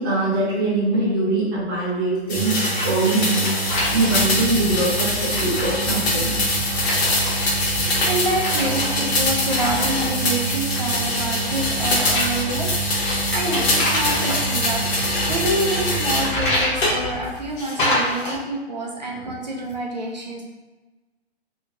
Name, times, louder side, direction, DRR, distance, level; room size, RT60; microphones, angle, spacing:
voice 1, 0.0-3.5 3.9-6.3 11.2-11.3, right 2 dB, 20° right, -10 dB, 0.8 m, -22 dB
sound 1, 2.3-16.3 16.8-17.4, equal, 70° left, 1.0 m, -23 dB
sound 2, 2.3-3.0 3.3-4.3 4.9-5.7 6.7-7.5 7.8-10.2 10.5-11.0 11.8-14.4 15.8-16.9 17.6-18.4, left 1 dB, 50° left, 0.9 m, -27 dB
sound 3, 3.6-17.5, left 1 dB, 10° left, 1.1 m, -36 dB
voice 2, 7.5-20.4, right 1 dB, 40° right, -2 dB, 0.4 m, -27 dB
2.8 x 2.8 x 2.3 m, 1.2 s
hypercardioid pair, 170°, 33 cm